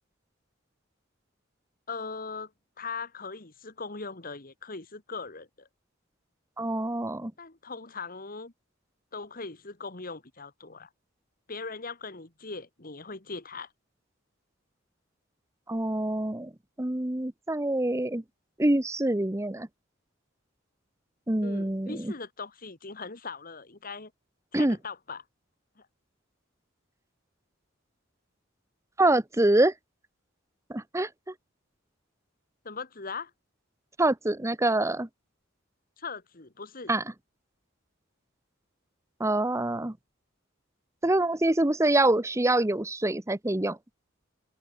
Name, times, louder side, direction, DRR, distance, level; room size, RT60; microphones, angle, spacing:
voice 1, 1.9-2.5 2.8-5.7 7.4-8.5 9.1-10.9 11.5-13.7 21.4-24.1 24.5-25.2 25.8-25.9 32.6-33.3 36.0-36.9, left 4 dB, 45° left, 2.1 m, -40 dB
voice 2, 6.6-7.3 15.7-16.5 16.8-18.2 18.6-19.7 21.3-22.1 24.5-24.8 29.0-29.7 30.7-31.3 34.0-35.1 36.9-37.0 39.2-39.9 41.0-43.8, right 1 dB, 15° right, 0.9 m, -25 dB
head